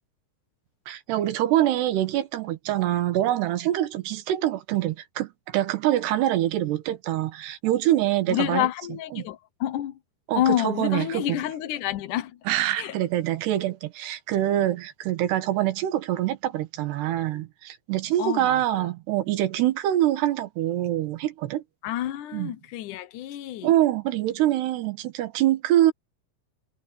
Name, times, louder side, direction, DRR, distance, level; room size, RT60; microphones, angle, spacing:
voice 1, 0.9-8.7 9.1-9.3 10.3-11.4 12.5-21.6 22.3-22.5 23.6-25.9, right 13 dB, 90° right, 3.5 m, -25 dB
voice 2, 8.3-9.9 10.4-12.4 12.8-13.0 18.2-18.8 21.8-23.7, left 13 dB, 70° left, 2.0 m, -28 dB
omnidirectional pair, 4.6 m